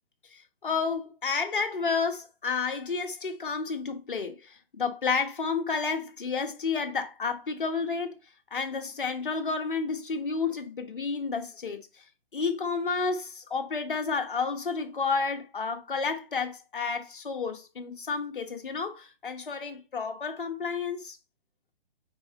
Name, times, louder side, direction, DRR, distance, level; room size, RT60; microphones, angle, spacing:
voice 1, 0.3-8.2 8.5-11.9 12.3-21.2, left 5 dB, 60° left, 1.4 m, -31 dB
6.9 x 4.9 x 3.1 m
figure-of-eight pair, 135°, 30 cm